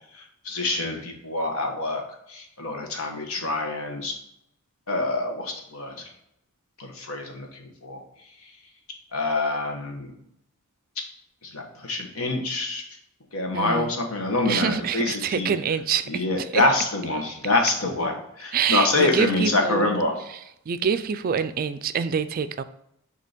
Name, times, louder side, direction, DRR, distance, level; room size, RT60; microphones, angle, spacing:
voice 1, 0.1-2.0 2.3-4.1 4.9-6.1 6.8-8.0 8.4-8.5 9.1-10.1 11.4-12.8 13.3-15.5 16.1-20.1, left 2 dB, 75° left, 1.3 m, -26 dB
voice 2, 13.5-13.9 14.5-16.6 18.5-19.9 20.7-22.6, right 6 dB, 45° right, 0.3 m, -26 dB
6.6 x 2.9 x 5.1 m
head